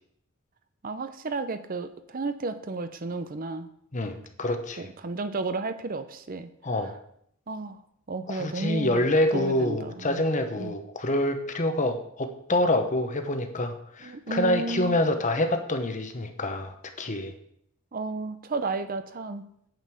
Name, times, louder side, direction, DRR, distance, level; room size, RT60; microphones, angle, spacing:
voice 1, 0.8-3.7 4.8-6.5 6.8-6.9 7.5-7.8 8.1-10.2 10.6-10.7 14.0-15.0 17.9-19.4, right 3 dB, 40° right, 10 dB, 0.6 m, -33 dB
voice 2, 3.9-4.9 6.6-6.9 8.3-17.3, left 1 dB, 35° left, 7 dB, 1.1 m, -26 dB
9.2 x 5.3 x 7.7 m, 0.70 s
head